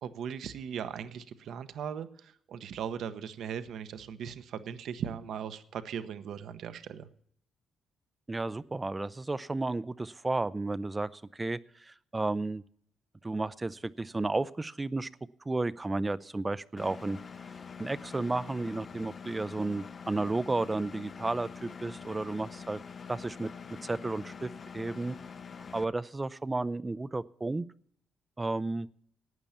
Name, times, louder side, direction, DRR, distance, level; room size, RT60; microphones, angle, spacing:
voice 1, 0.0-7.1, right 8 dB, 70° right, 11 dB, 0.9 m, -38 dB
voice 2, 8.3-12.6 13.2-15.1 15.5-17.2 17.8-22.8 23.1-23.5 23.8-25.2 25.7-27.7 28.4-28.9, right 2 dB, 20° right, 15 dB, 0.4 m, -33 dB
Engine, 16.8-25.8, left 6 dB, 40° left, 0.6 m, -45 dB
12.5 x 8.9 x 7.1 m, 0.63 s
cardioid pair, 90°, 0 cm